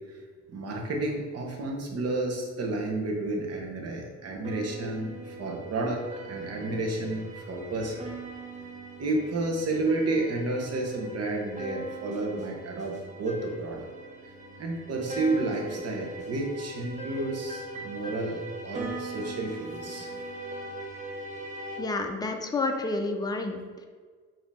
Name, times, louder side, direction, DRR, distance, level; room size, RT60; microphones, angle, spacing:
voice 1, 0.5-8.2 9.0-13.9 14.2-14.3 14.6-20.1, right 2 dB, 55° right, 0 dB, 1.0 m, -31 dB
sound 1, 4.4-21.8, right 2 dB, 25° right, 0.7 m, -41 dB
voice 2, 21.8-23.9, left 3 dB, 15° left, 4 dB, 0.5 m, -30 dB
5.0 x 2.8 x 3.5 m, 1.6 s
cardioid pair, 90°, 30 cm